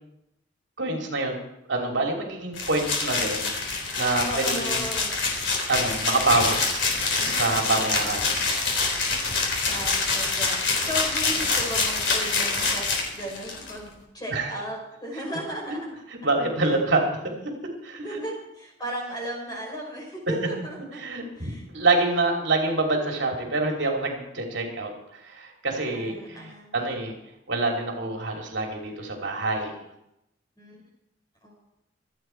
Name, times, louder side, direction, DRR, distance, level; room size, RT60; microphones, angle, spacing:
voice 1, 0.8-1.4 1.7-4.9 5.7-6.9 7.2-8.4 14.3-14.5 16.2-17.5 17.8-18.2 21.0-24.9 25.2-27.1 27.5-29.7, right 2 dB, 70° right, 1 dB, 3.0 m, -26 dB
sound 1, 2.5-13.7, left 4 dB, 75° left, 3.7 m, -26 dB
voice 2, 4.3-5.1 7.7-8.3 9.7-12.9 13.1-15.9 16.6-16.7 18.0-21.0 21.4-21.6 25.9-26.8 30.6-30.8 31.4-31.5, equal, 20° left, -1 dB, 5.3 m, -36 dB
26.0 x 8.8 x 4.6 m, 0.85 s
head